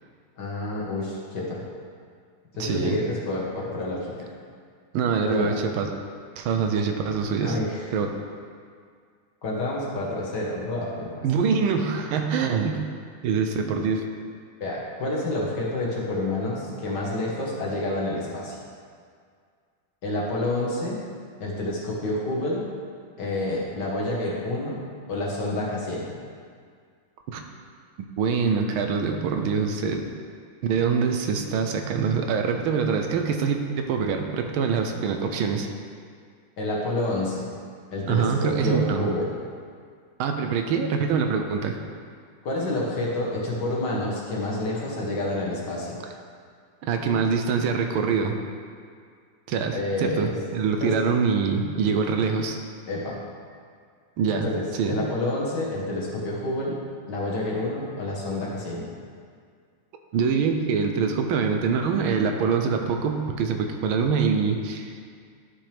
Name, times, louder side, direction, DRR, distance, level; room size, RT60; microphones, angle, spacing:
voice 1, 0.4-1.6 2.6-4.1 5.3-5.5 7.4-7.9 9.4-11.2 14.6-18.6 20.0-21.0 21.4-22.6 23.2-24.8 25.1-26.1 34.9-35.0 36.6-37.5 37.9-39.3 42.4-46.0 49.7-50.3 50.8-50.9 52.9-53.2 54.3-56.8 57.1-58.9, left 1 dB, 55° left, -4 dB, 2.0 m, -28 dB
voice 2, 2.6-3.0 4.9-6.0 6.4-7.6 7.9-8.1 11.2-12.8 13.2-14.0 27.3-27.4 28.2-30.1 30.6-35.7 38.1-39.1 40.2-41.8 46.8-48.4 49.5-52.6 54.2-54.5 54.8-55.0 60.1-64.9, right 5 dB, 80° right, 4 dB, 1.5 m, -24 dB
11.5 x 6.2 x 3.4 m, 2.1 s
omnidirectional pair, 2.3 m